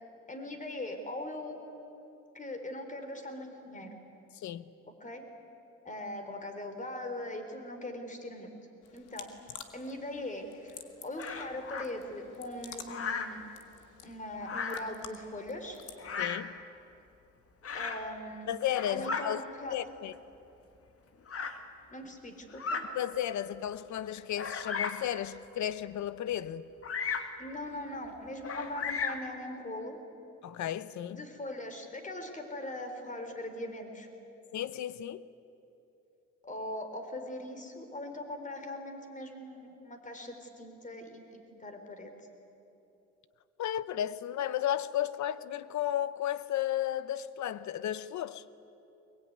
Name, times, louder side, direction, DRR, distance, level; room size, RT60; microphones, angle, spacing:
voice 1, 0.3-1.6 2.3-3.9 5.0-5.3 5.8-8.5 8.9-9.3 9.7-10.8 11.0-13.5 14.0-15.8 17.7-18.5 18.9-19.8 21.9-22.8 27.4-30.0 31.1-34.1 36.4-42.1, left 1 dB, 25° left, 3.8 m, -40 dB
voice 2, 4.3-4.6 16.2-16.6 18.5-20.1 22.9-26.6 30.4-31.3 34.5-35.3 43.6-48.4, left 11 dB, 70° left, 0.9 m, -34 dB
sound 1, 8.8-16.1, left 9 dB, 85° left, 1.8 m, -51 dB
Bird vocalization bird call bird song, 11.2-11.9 12.9-13.4 14.4-14.9 16.0-16.5 17.6-18.1 18.6-19.3 20.1-20.2 21.3-21.6 22.5-22.9 23.5-23.6 24.3-25.1 26.8-27.4 28.4-29.3, left 5 dB, 50° left, 1.9 m, -35 dB
22.0 x 21.5 x 9.6 m
cardioid pair, 90°, 30 cm